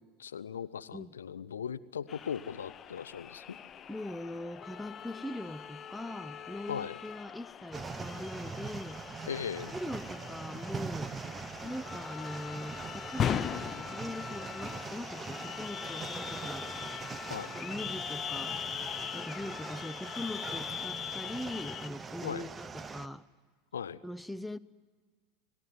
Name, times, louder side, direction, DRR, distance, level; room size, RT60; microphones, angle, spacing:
voice 1, 0.2-3.6 6.7-7.0 9.3-9.7 17.3-17.5 22.2-22.5 23.7-24.0, left 8 dB, 80° left, 0.7 m, -38 dB
sound 1, 2.1-21.9, left 8 dB, 35° left, 0.9 m, -40 dB
voice 2, 3.9-9.0 9.7-11.1 11.6-16.7 17.5-18.5 19.1-23.2 24.0-24.6, left 1 dB, 5° left, 0.7 m, -41 dB
sound 2, 7.7-23.1, right 5 dB, 20° right, 1.1 m, -42 dB
30.0 x 18.5 x 9.6 m
figure-of-eight pair, 80°, 0 cm